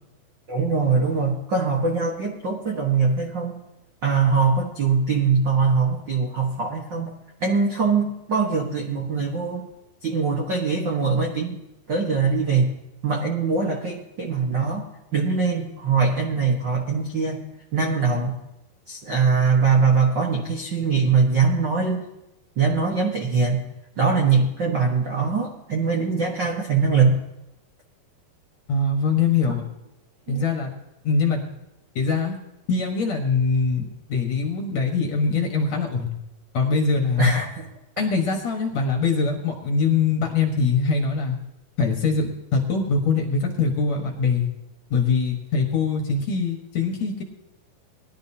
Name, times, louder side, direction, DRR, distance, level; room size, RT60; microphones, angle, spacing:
voice 1, 0.5-3.6 4.0-7.1 7.4-9.7 10.0-11.6 11.9-12.7 13.0-14.8 15.1-17.4 17.7-18.4 18.9-22.0 22.6-23.6 24.0-27.2 30.3-30.5 37.2-37.7, right 5 dB, 60° right, -1 dB, 1.1 m, -22 dB
voice 2, 28.7-29.6 30.3-30.7 31.0-31.4 32.0-32.3 32.7-33.8 34.1-36.1 36.5-37.3 38.0-41.4 41.8-44.5 44.9-47.2, left 4 dB, 55° left, 2 dB, 2.3 m, -23 dB
20.5 x 11.5 x 2.9 m, 0.92 s
omnidirectional pair, 4.4 m